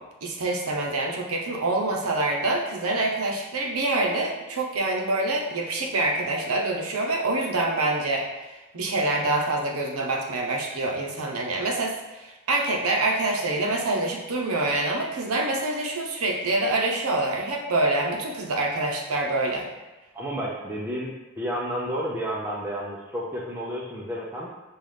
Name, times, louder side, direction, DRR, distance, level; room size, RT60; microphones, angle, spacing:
voice 1, 0.2-19.7, right 2 dB, 85° right, 0 dB, 0.8 m, -26 dB
voice 2, 20.1-24.5, equal, 10° right, -6 dB, 0.4 m, -31 dB
5.4 x 2.4 x 3.3 m, 1.1 s
head